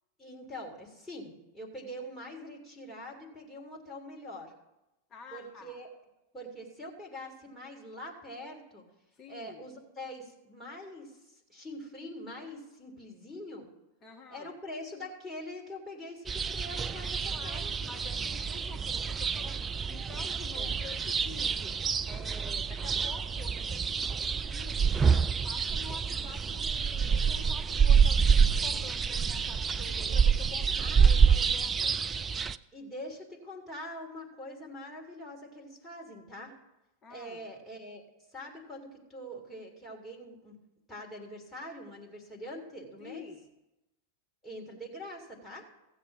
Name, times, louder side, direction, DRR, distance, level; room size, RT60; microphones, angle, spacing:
voice 1, 0.2-4.5 5.3-5.9 6.3-8.8 9.3-13.7 14.3-17.2 17.4-17.7 20.5-20.7 29.9-30.3 30.8-31.1 32.7-36.5 37.1-40.6 40.9-43.3 44.4-45.7, left 1 dB, 5° left, -3 dB, 2.9 m, -44 dB
voice 2, 5.1-5.8 9.2-9.7 14.0-14.5 17.0-21.8 22.1-31.9 37.0-37.4 43.0-43.5, left 5 dB, 25° left, 2 dB, 1.0 m, -49 dB
sound 1, 16.3-32.6, right 6 dB, 20° right, 0.3 m, -27 dB
15.0 x 7.5 x 5.9 m, 0.95 s
figure-of-eight pair, 90°, 0 cm